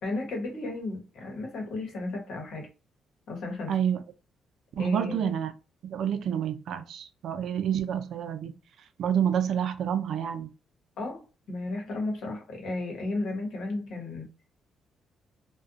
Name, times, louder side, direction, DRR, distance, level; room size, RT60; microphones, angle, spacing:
voice 1, 0.0-2.7 3.3-3.7 4.8-5.3 11.0-14.3, left 2 dB, 70° left, 1.0 m, -34 dB
voice 2, 3.7-4.0 4.8-5.5 5.8-8.6 9.0-10.5, right 8 dB, 70° right, 0.4 m, -28 dB
2.5 x 2.2 x 2.5 m
cardioid pair, 90°, 0 cm